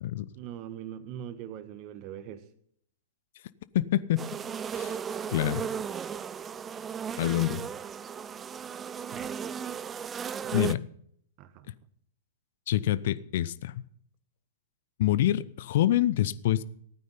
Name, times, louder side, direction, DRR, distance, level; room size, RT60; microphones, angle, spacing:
voice 1, 0.4-2.4 9.1-9.3 10.4-10.6 11.4-11.7, right 10 dB, 40° right, 1.3 m, -41 dB
voice 2, 3.7-4.2 4.8-4.9 5.3-5.6 7.2-7.6 10.5-10.8 12.7-13.7 15.0-16.6, left 13 dB, 55° left, 0.7 m, -26 dB
sound 1, 4.2-10.8, right 7 dB, 20° right, 0.5 m, -35 dB
15.0 x 9.4 x 5.4 m
figure-of-eight pair, 105°, 0 cm